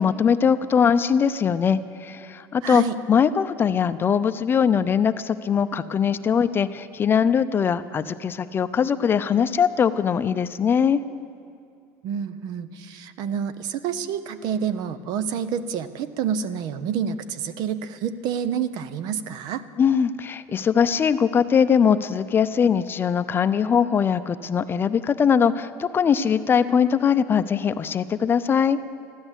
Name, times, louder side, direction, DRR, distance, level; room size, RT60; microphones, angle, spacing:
voice 1, 0.0-11.0 19.8-28.8, left 7 dB, 30° left, 12 dB, 0.6 m, -21 dB
voice 2, 2.6-3.0 12.0-19.6, right 8 dB, 60° right, 13 dB, 0.9 m, -28 dB
14.5 x 12.0 x 8.1 m, 2.4 s
supercardioid pair, 120°, 8 cm